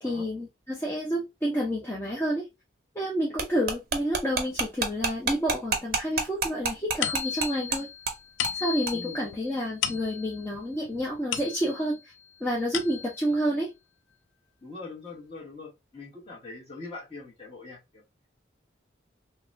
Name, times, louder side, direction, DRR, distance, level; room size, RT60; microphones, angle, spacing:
voice 1, 0.0-2.5 2.9-7.9 8.5-12.0 12.4-13.7, equal, 10° left, 0.5 m, -29 dB
sound 1, 3.4-7.8 8.1-8.2 8.4-8.6 8.9-9.0, right 4 dB, 50° right, 0.6 m, -28 dB
sound 2, 7.0-12.0 12.4-13.3, left 9 dB, 85° left, 0.3 m, -35 dB
voice 2, 8.9-9.3 14.6-18.0, left 3 dB, 30° left, 1.1 m, -42 dB
2.9 x 2.2 x 2.5 m
head